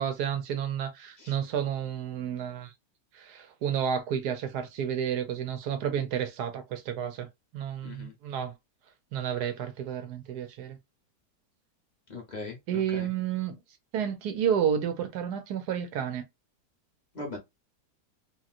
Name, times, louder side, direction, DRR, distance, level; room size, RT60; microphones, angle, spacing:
voice 1, 0.0-2.7 3.1-7.3 7.5-8.5 9.1-10.8 12.7-13.6 13.9-16.2, right 8 dB, 70° right, 1.2 m, -31 dB
voice 2, 7.8-8.1 12.1-13.1 17.1-17.4, left 3 dB, 35° left, 0.7 m, -40 dB
2.9 x 2.8 x 2.4 m
omnidirectional pair, 1.8 m